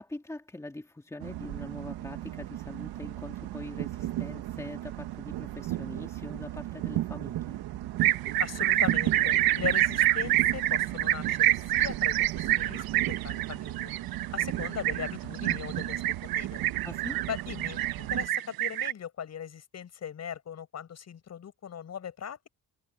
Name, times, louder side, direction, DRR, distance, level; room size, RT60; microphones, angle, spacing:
voice 1, 0.0-7.6 16.8-17.2, left 2 dB, 10° left, 2.4 m, -43 dB
sound 1, 1.2-18.3, right 14 dB, 90° right, 1.4 m, -36 dB
sound 2, 8.0-18.9, right 14 dB, 70° right, 1.0 m, -27 dB
voice 2, 8.4-12.8 13.2-13.9 14.3-16.0 16.3-16.6 17.3-22.5, left 8 dB, 45° left, 6.8 m, -39 dB
cardioid pair, 145°, 37 cm